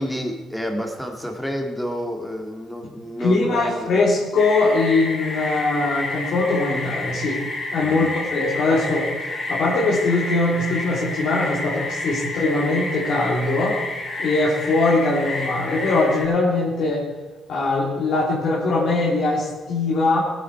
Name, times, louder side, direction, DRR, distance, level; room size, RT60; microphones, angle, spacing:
voice 1, 0.0-3.9 7.8-8.2, equal, ahead, 2 dB, 2.1 m, -29 dB
voice 2, 3.2-7.4 7.7-13.8 14.2-17.0 17.5-20.2, left 2 dB, 70° left, -5 dB, 3.0 m, -21 dB
sound 1, 4.4-16.2, left 2 dB, 45° left, 5.1 m, -29 dB
17.0 x 9.5 x 4.5 m, 1.3 s
cardioid pair, 90°, 0 cm